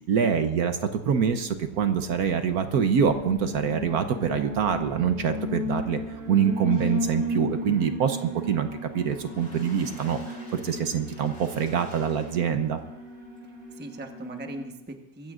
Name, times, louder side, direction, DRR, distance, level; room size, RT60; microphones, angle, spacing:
voice 1, 0.1-6.0 6.3-8.7 8.9-12.8, right 7 dB, 65° right, 8 dB, 1.2 m, -25 dB
Alarm, 1.2-14.6, left 1 dB, 45° right, 3.9 m, -35 dB
voice 2, 7.7-8.0 13.7-15.3, right 1 dB, 10° right, 4 dB, 0.7 m, -39 dB
Water / Splash splatter, 9.0-12.8 13.4-13.5 13.8-13.9, left 1 dB, 65° left, 7.3 m, -50 dB
23.5 x 15.5 x 2.5 m, 0.97 s
omnidirectional pair, 1.9 m